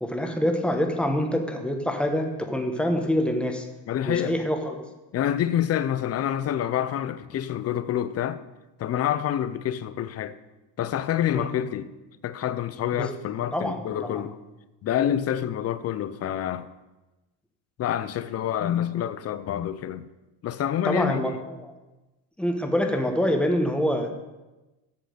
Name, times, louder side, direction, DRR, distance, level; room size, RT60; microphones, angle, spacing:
voice 1, 0.0-3.7 4.1-4.8 11.3-11.5 13.0-13.1 13.5-14.3 20.8-21.7 22.4-24.1, equal, ahead, 1.1 m, -26 dB
voice 2, 3.9-4.4 5.1-8.4 8.8-10.3 10.8-11.9 12.2-14.4 14.8-16.7 17.8-20.1 20.4-21.4, left 10 dB, 35° left, 0.5 m, -27 dB
8.5 x 6.3 x 7.7 m
cardioid pair, 140°, 47 cm